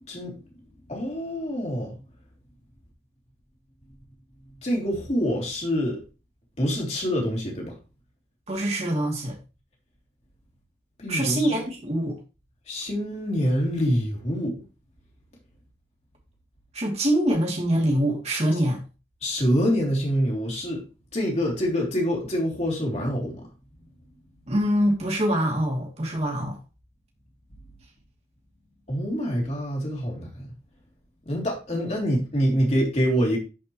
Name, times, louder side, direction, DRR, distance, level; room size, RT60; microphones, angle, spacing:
voice 1, 0.9-2.0 4.6-6.0 6.6-7.7 11.0-11.6 12.7-14.6 19.2-20.8 21.1-23.5 28.9-30.5 31.2-33.4, equal, 40° left, 3.1 m, -26 dB
voice 2, 8.5-9.3 11.1-12.2 16.7-18.8 24.5-26.6, right 1 dB, 40° right, 2.7 m, -24 dB
11.0 x 5.2 x 3.1 m
head